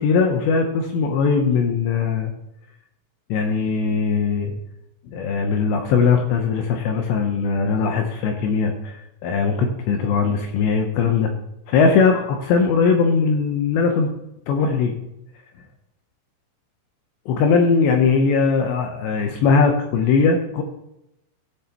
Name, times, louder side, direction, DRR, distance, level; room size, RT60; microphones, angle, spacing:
voice 1, 0.0-2.3 3.3-4.5 5.1-9.0 9.2-11.3 11.7-14.1 14.5-14.9 17.3-20.6, left 5 dB, 75° left, 3 dB, 2.7 m, -20 dB
16.5 x 7.9 x 3.0 m, 0.86 s
omnidirectional pair, 5.8 m